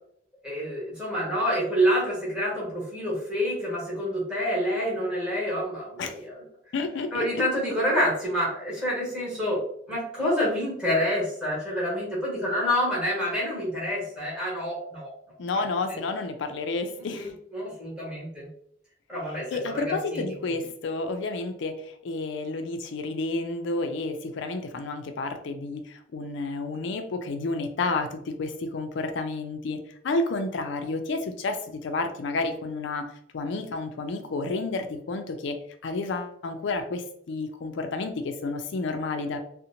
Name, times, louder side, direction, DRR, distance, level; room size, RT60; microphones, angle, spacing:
voice 1, 0.4-6.4 7.1-9.6 9.9-15.1 15.9-16.0 17.0-18.5 19.1-20.2, equal, 5° right, -7 dB, 1.3 m, -28 dB
voice 2, 6.7-7.4 15.4-17.3 19.5-29.8 30.0-33.1 33.3-35.6 35.8-39.4, left 3 dB, 65° left, 7 dB, 0.4 m, -30 dB
2.8 x 2.1 x 2.6 m, 0.67 s
head